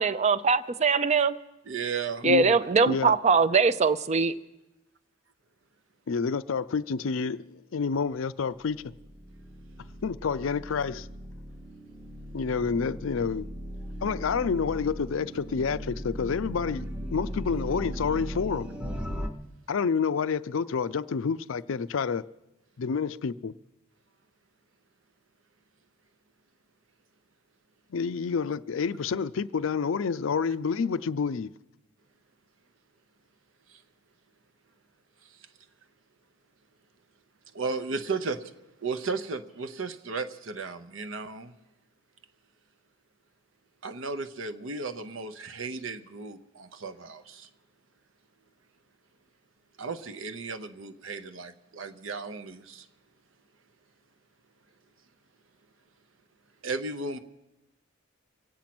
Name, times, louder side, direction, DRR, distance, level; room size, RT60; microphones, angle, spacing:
voice 1, 0.0-1.4 2.2-4.3, right 4 dB, 35° right, 0.5 m, -22 dB
voice 2, 1.7-2.3 33.7-33.8 35.2-35.5 37.5-38.4 38.8-41.6 43.8-47.5 49.8-52.9 56.6-57.2, right 4 dB, 65° right, 0.8 m, -35 dB
voice 3, 2.2-2.6 2.9-3.1 6.1-8.8 10.0-11.1 12.3-13.5 14.0-16.9 17.1-18.7 19.7-22.2 22.8-23.5 27.9-31.5, left 5 dB, 65° left, 0.4 m, -28 dB
sound 1, 8.5-19.3, equal, 5° right, 0.9 m, -38 dB
23.5 x 8.8 x 6.0 m
head